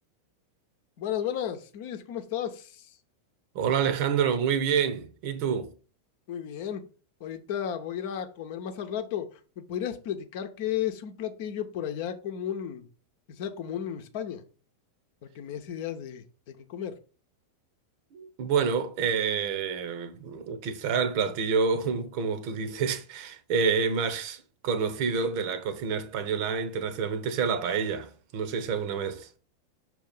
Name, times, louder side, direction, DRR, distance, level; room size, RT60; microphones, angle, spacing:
voice 1, 1.0-3.0 6.3-6.9 7.2-12.9 13.3-14.4 15.3-17.0, left 9 dB, 50° left, 0.9 m, -34 dB
voice 2, 3.5-5.7 18.1-29.3, right 6 dB, 45° right, 0.9 m, -28 dB
6.4 x 3.1 x 5.6 m
figure-of-eight pair, 90°, 0 cm